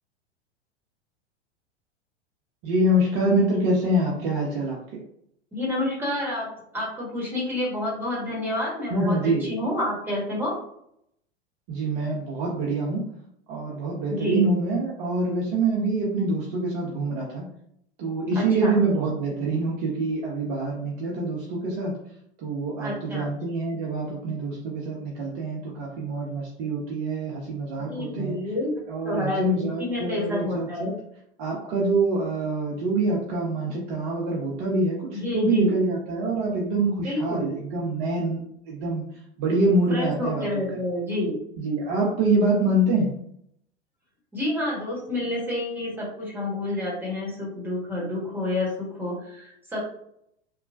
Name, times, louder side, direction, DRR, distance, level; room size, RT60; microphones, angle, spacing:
voice 1, 2.6-4.8 8.9-9.4 11.7-13.0 13.5-17.5 18.0-22.0 22.4-28.4 28.9-30.9 31.4-39.1 39.4-40.5 41.6-43.2, right 2 dB, 40° right, -3 dB, 0.7 m, -25 dB
voice 2, 5.5-10.5 14.1-14.4 18.3-18.8 22.8-23.3 27.9-28.7 29.0-30.9 35.1-35.7 37.0-37.5 39.9-41.4 44.3-49.8, left 1 dB, 5° right, -4 dB, 1.3 m, -29 dB
3.0 x 2.2 x 2.4 m, 0.73 s
figure-of-eight pair, 90°, 34 cm